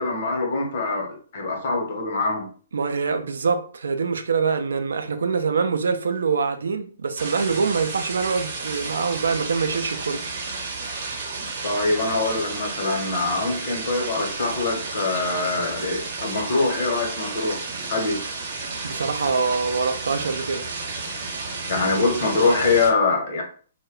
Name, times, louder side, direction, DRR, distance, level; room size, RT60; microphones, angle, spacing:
voice 1, 0.0-2.5 11.6-17.6 17.9-18.2 21.7-23.4, left 3 dB, 55° left, 0.9 m, -24 dB
voice 2, 2.7-10.2 18.8-20.7, right 5 dB, 70° right, 0.4 m, -24 dB
sound 1, 7.2-22.9, right 3 dB, 50° right, 0.8 m, -32 dB
2.2 x 2.2 x 3.6 m
figure-of-eight pair, 125°, 0 cm